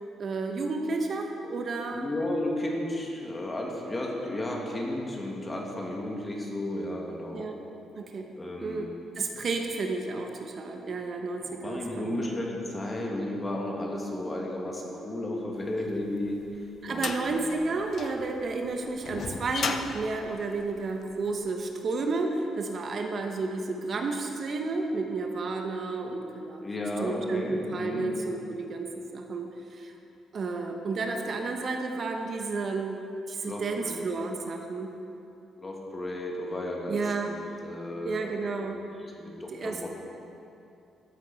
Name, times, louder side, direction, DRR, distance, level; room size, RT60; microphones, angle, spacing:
voice 1, 0.2-2.1 7.3-7.6 7.9-8.3 8.6-12.3 16.8-26.6 27.0-29.9 30.3-34.9 36.9-37.3 38.0-38.8 39.5-39.9, right 3 dB, 50° right, 3 dB, 0.9 m, -32 dB
voice 2, 1.9-7.5 8.4-8.9 11.5-16.4 16.9-17.3 26.6-28.1 33.4-34.0 35.6-38.9 39.2-39.9, left 1 dB, 25° left, -1 dB, 1.9 m, -33 dB
sound 1, 16.0-21.3, left 5 dB, 55° left, 0.6 m, -36 dB
13.0 x 8.0 x 4.1 m, 2.8 s
cardioid pair, 90°, 0 cm